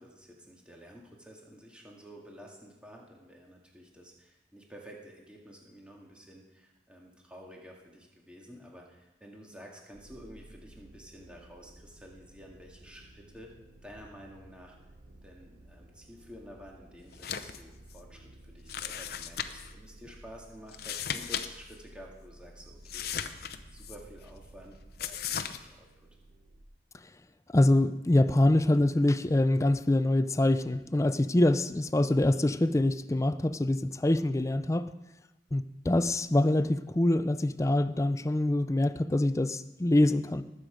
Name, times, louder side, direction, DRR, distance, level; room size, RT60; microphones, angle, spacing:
voice 1, 0.0-13.5 13.8-14.8 15.2-18.3 18.5-23.4 23.7-25.9, equal, 5° right, -1 dB, 2.0 m, -51 dB
sound 1, 9.9-26.6, right 1 dB, 90° right, 1.6 m, -54 dB
sound 2, 17.1-17.6 17.9-18.0 18.7-19.7 20.7-21.5 21.7-21.8 22.8-24.0 25.0-25.6, left 8 dB, 60° left, 0.7 m, -36 dB
voice 2, 27.5-34.9 35.5-40.4, left 1 dB, 15° left, 12 dB, 0.4 m, -25 dB
19.5 x 8.1 x 5.1 m, 1.0 s
head